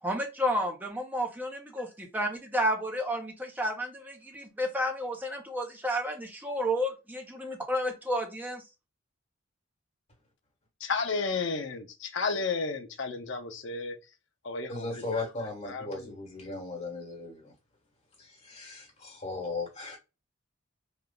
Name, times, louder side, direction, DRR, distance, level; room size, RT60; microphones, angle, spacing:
voice 1, 0.0-8.6, equal, 10° right, 0.7 m, -31 dB
voice 2, 10.8-14.0 14.4-15.1 15.6-16.1, left 4 dB, 60° left, 0.6 m, -32 dB
voice 3, 14.7-17.5 18.2-20.0, left 3 dB, 30° left, 1.5 m, -37 dB
3.2 x 2.3 x 3.7 m
head